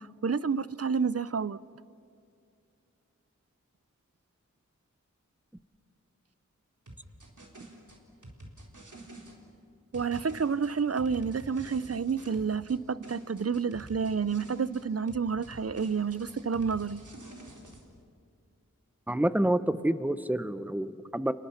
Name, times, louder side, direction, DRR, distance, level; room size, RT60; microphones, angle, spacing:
voice 1, 0.0-1.6 9.9-17.0, right 5 dB, 55° right, 0.6 m, -29 dB
sound 1, 6.9-9.4 9.9-12.8 13.0-14.8 15.1-17.8, right 1 dB, 75° right, 4.1 m, -48 dB
voice 2, 19.1-21.3, right 1 dB, 5° right, 1.0 m, -28 dB
30.0 x 29.5 x 5.8 m
wide cardioid pair, 45°, 30 cm